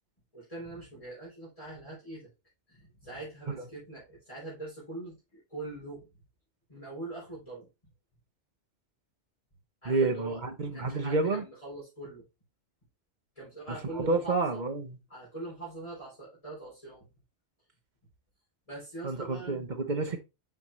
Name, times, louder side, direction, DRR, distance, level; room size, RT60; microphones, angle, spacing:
voice 1, 0.3-2.3 2.7-6.1 6.7-7.7 9.8-12.2 13.4-14.6 15.1-17.1 18.7-19.8, right 2 dB, 30° left, 3.6 m, -42 dB
voice 2, 9.8-11.4 13.9-15.0 19.0-20.2, right 3 dB, 45° right, 1.0 m, -29 dB
6.0 x 5.3 x 3.1 m
omnidirectional pair, 1.2 m